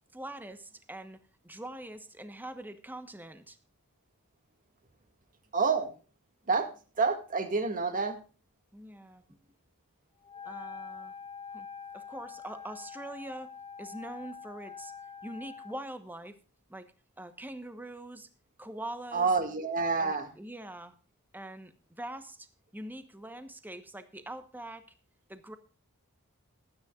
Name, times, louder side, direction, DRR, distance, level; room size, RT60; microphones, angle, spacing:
voice 1, 0.1-3.6 8.7-9.4 10.4-11.1 11.5-11.7 11.9-13.5 13.8-14.9 15.2-16.3 16.7-18.3 18.6-19.3 20.0-21.0 21.3-22.5 22.7-24.8 25.3-25.6, right 1 dB, 10° right, 9 dB, 1.1 m, -43 dB
voice 2, 5.5-5.9 6.5-6.7 7.0-8.2 19.1-20.3, right 4 dB, 35° right, 7 dB, 2.0 m, -28 dB
Wind instrument woodwind instrument, 10.2-15.9, left 6 dB, 25° left, 1.0 m, -45 dB
20.5 x 9.7 x 2.4 m, 0.35 s
head